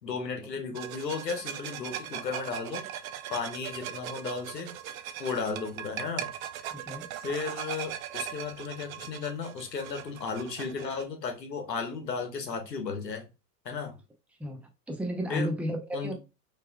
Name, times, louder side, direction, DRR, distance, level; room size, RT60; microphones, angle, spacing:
voice 1, 0.0-2.8 3.3-4.7 5.2-6.3 7.2-13.2 13.6-13.9 15.3-15.5 15.9-16.1, left 5 dB, 85° left, 1.1 m, -34 dB
sound 1, 0.8-11.0, right 10 dB, 60° right, 0.6 m, -39 dB
voice 2, 6.7-7.1 14.4-16.1, equal, 5° right, 0.6 m, -33 dB
4.5 x 3.1 x 2.2 m
figure-of-eight pair, 90°, 49 cm